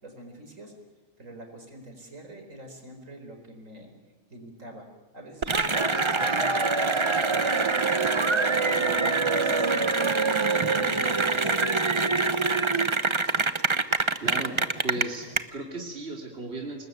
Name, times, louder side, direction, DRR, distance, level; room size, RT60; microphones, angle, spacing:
voice 1, 0.0-0.7 1.2-3.9 4.3-7.7 8.4-10.1 10.5-11.7, right 1 dB, 85° right, 4 dB, 5.0 m, -44 dB
Cheering / Applause, 5.4-15.4, right 3 dB, 25° right, 0.9 m, -24 dB
voice 2, 14.2-14.6 14.8-16.8, right 2 dB, 55° right, 1 dB, 3.0 m, -35 dB
28.0 x 20.0 x 9.2 m, 1.2 s
omnidirectional pair, 1.3 m